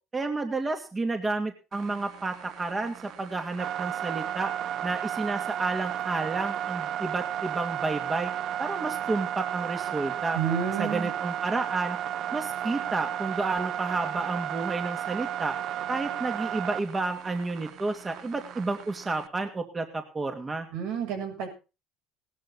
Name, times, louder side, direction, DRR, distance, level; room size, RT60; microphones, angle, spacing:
voice 1, 0.1-4.5 4.8-8.3 8.6-10.4 10.8-12.0 12.3-15.6 15.9-20.7, right 3 dB, 25° right, 5 dB, 2.4 m, -31 dB
sound 1, 1.7-19.3, right 10 dB, 60° right, 0.9 m, -33 dB
voice 2, 10.3-11.1 20.7-21.5, right 7 dB, 80° right, 3 dB, 7.6 m, -30 dB
18.0 x 12.5 x 4.1 m, 0.32 s
supercardioid pair, 100°, 0 cm